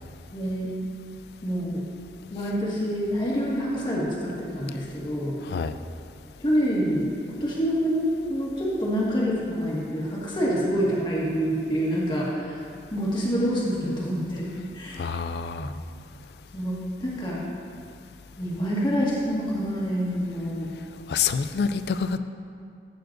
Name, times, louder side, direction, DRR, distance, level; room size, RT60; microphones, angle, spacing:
voice 1, 0.3-0.7 1.4-1.8 2.3-5.4 6.4-14.5 14.7-15.1 15.6-15.8 16.5-17.4 18.4-20.7, equal, 25° left, -5 dB, 1.6 m, -27 dB
voice 2, 15.0-15.7 21.1-22.2, left 6 dB, 65° left, 10 dB, 0.3 m, -27 dB
14.0 x 6.9 x 2.6 m, 2.3 s
head